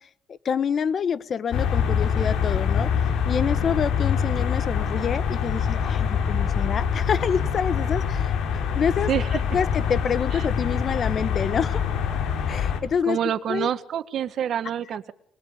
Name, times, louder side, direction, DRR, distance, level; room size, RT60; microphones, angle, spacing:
voice 1, 0.0-2.9 3.2-11.8 12.5-13.2 13.5-13.7, left 7 dB, 55° left, 1.3 m, -27 dB
sound 1, 1.5-12.8, left 7 dB, 85° left, 4.7 m, -25 dB
voice 2, 13.1-15.1, right 9 dB, 65° right, 1.7 m, -26 dB
26.5 x 21.5 x 8.8 m
cardioid pair, 90°, 0 cm